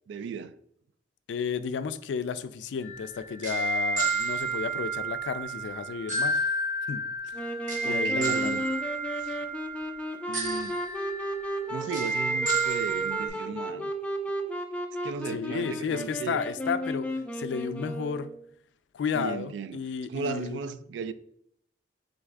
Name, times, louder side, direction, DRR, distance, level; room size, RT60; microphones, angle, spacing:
voice 1, 0.1-0.5 7.8-8.7 9.2-9.5 10.3-10.8 11.7-13.9 15.0-16.4 19.1-21.1, right 6 dB, 90° right, 0.3 m, -36 dB
voice 2, 1.3-6.4 6.9-7.0 7.8-8.6 15.3-17.1 17.3-18.3 18.9-20.7, left 6 dB, 85° left, 0.3 m, -32 dB
sound 1, 2.8-13.3, right 3 dB, 45° right, 1.2 m, -31 dB
Wind instrument woodwind instrument, 7.3-18.5, equal, 5° left, 0.4 m, -34 dB
3.9 x 3.5 x 3.3 m
head